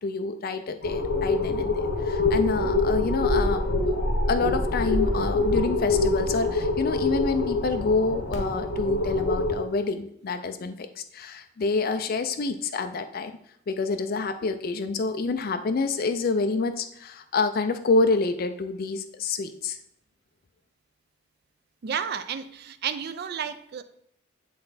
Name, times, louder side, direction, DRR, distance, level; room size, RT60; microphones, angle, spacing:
voice 1, 0.0-3.6 4.3-13.3 13.7-19.8, left 3 dB, 45° left, 8 dB, 0.4 m, -27 dB
sound 1, 0.8-9.5, left 2 dB, 70° left, 1.1 m, -25 dB
voice 2, 21.8-23.8, right 7 dB, 50° right, 11 dB, 0.4 m, -32 dB
7.8 x 3.3 x 4.0 m, 0.73 s
head